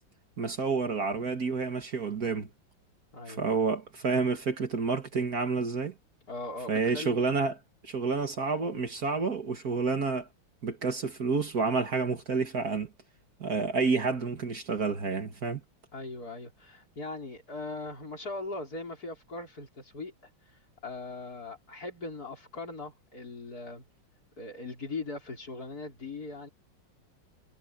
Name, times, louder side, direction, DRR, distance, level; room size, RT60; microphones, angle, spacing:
voice 1, 0.4-2.5 3.3-5.9 6.7-7.5 7.8-10.3 10.6-12.9 13.4-15.6, right 4 dB, 50° right, 2.1 m, -29 dB
voice 2, 3.1-3.6 6.3-7.3 15.9-20.3 20.8-23.8 24.4-26.5, left 3 dB, 50° left, 5.1 m, -40 dB
omnidirectional pair, 2.1 m